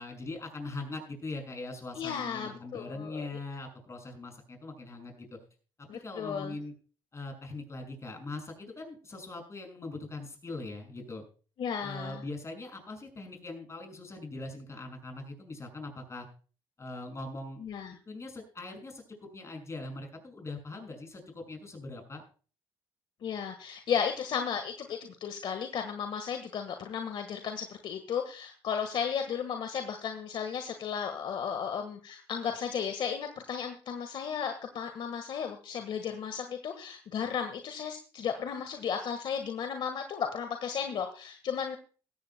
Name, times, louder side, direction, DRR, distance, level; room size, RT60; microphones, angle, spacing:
voice 1, 0.0-5.4 5.8-6.7 7.1-11.2 11.8-16.3 16.8-17.6 18.1-19.0 19.3-22.2, left 2 dB, 30° left, 4 dB, 6.1 m, -41 dB
voice 2, 1.9-3.4 5.9-6.6 11.6-12.2 17.6-18.0 23.2-41.8, left 7 dB, 60° left, 7 dB, 1.5 m, -34 dB
17.0 x 14.5 x 2.2 m, 0.39 s
supercardioid pair, 80°, 10 cm